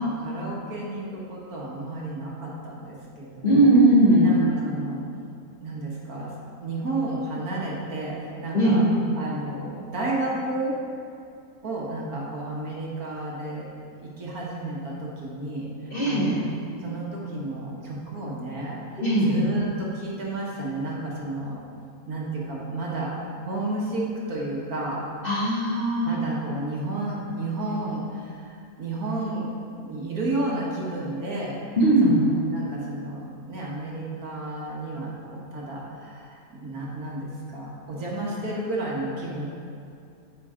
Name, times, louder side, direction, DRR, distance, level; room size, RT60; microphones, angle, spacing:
voice 1, 0.0-3.7 4.2-5.0 5.6-6.3 6.6-8.9 9.1-10.8 11.6-13.7 14.0-16.5 16.8-21.6 22.1-23.2 23.5-25.0 26.0-29.5 29.8-31.6 32.0-39.5, right 2 dB, 65° right, -4 dB, 1.9 m, -32 dB
voice 2, 3.4-4.3 8.5-8.9 15.9-16.4 19.0-19.3 25.2-26.1 31.8-32.2, right 1 dB, 35° left, -10 dB, 2.7 m, -19 dB
9.3 x 7.6 x 3.8 m, 2.4 s
omnidirectional pair, 1.7 m